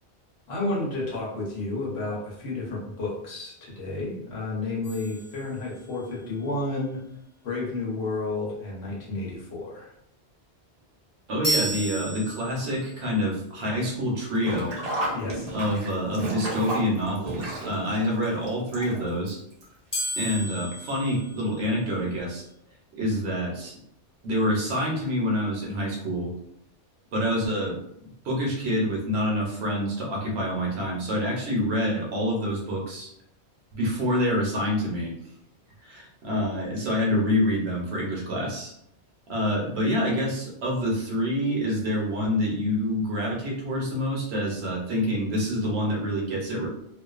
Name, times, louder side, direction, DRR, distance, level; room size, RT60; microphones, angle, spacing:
voice 1, 0.5-7.0 7.4-9.9 15.1-15.5, left 2 dB, 70° left, -4 dB, 1.1 m, -31 dB
sound 1, 4.8-6.1 11.4-12.9 19.9-22.1, right 1 dB, 20° left, 0.6 m, -33 dB
voice 2, 11.3-14.8 15.5-19.4 20.2-22.4 22.9-23.8 24.2-26.3 27.1-33.1 33.7-35.1 35.8-38.7 39.3-46.7, equal, 70° right, -2 dB, 1.0 m, -27 dB
Sink (filling or washing), 14.3-19.3 19.6-19.7 20.7-20.8 21.1-21.2, right 1 dB, 45° right, 0.6 m, -32 dB
2.4 x 2.3 x 2.3 m, 0.74 s
omnidirectional pair, 1.1 m